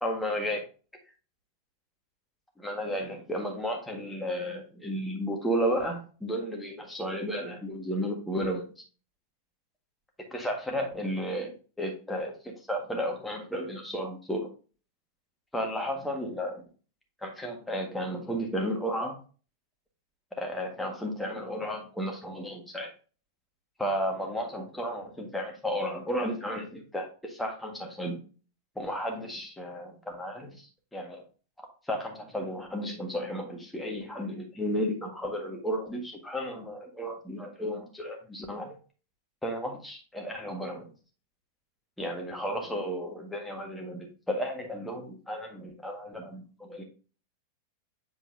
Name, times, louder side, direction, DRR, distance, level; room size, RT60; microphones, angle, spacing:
voice 1, 0.0-0.6 2.6-8.6 10.3-14.5 15.5-16.7 17.2-19.2 20.3-22.9 23.8-28.2 28.8-31.2 31.6-38.8 39.4-40.9 42.0-46.8, equal, 5° left, 2 dB, 1.6 m, -33 dB
7.9 x 4.5 x 2.7 m, 0.37 s
figure-of-eight pair, 90°, 0 cm